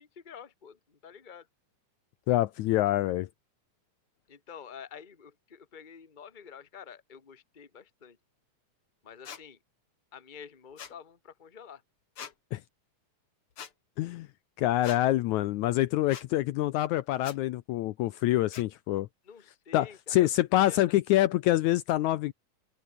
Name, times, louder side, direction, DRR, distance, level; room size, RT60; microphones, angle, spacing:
voice 1, 0.0-1.5 4.3-8.2 9.0-9.6 10.1-11.8 19.2-20.8, left 7 dB, 20° left, 1.3 m, -48 dB
voice 2, 2.3-3.3 12.5-12.6 14.0-14.3 14.6-19.1 19.7-22.3, left 15 dB, 75° left, 1.9 m, -26 dB
sound 1, 9.3-9.4 10.8-11.0 12.2-12.3 13.6-13.7 14.8-15.0 16.1-16.3 17.2-17.4 18.5-18.7, left 8 dB, 45° left, 2.5 m, -43 dB
omnidirectional pair, 3.7 m